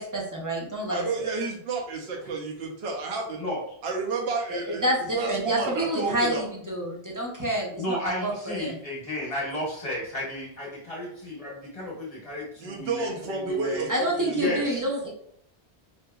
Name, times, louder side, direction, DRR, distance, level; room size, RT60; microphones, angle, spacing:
voice 1, 0.0-1.0 4.7-8.8 13.9-15.1, right 1 dB, 25° right, -2 dB, 0.4 m, -28 dB
voice 2, 0.9-3.4 3.8-4.8 5.1-6.4 12.6-14.7, right 4 dB, 70° right, 0 dB, 0.8 m, -30 dB
voice 3, 7.8-13.9 14.3-14.8, left 1 dB, 35° left, -3 dB, 0.9 m, -33 dB
2.7 x 2.6 x 2.3 m, 0.68 s
omnidirectional pair, 1.1 m